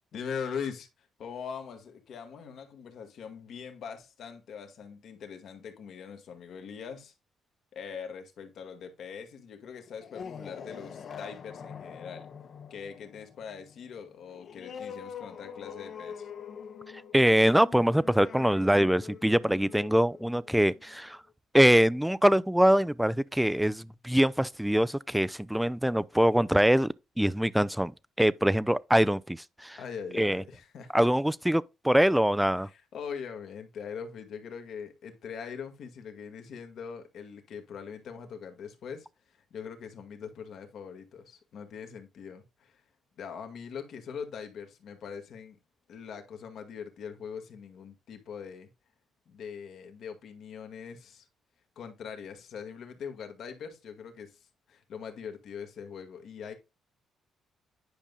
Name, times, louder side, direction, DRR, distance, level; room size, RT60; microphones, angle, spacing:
voice 1, 0.1-7.1 7.7-12.3 12.7-16.3 29.8-31.0 32.6-42.8 43.2-45.6 45.9-48.7 49.3-51.3 51.8-54.4 54.7-56.5, left 6 dB, 70° left, 1.7 m, -42 dB
sound 1, 9.9-21.1, left 7 dB, 55° left, 0.9 m, -44 dB
voice 2, 17.1-21.2 21.5-27.9 28.2-29.8 30.1-30.4 30.9-32.7, equal, 5° right, 0.4 m, -24 dB
10.0 x 5.3 x 2.3 m
cardioid pair, 90°, 0 cm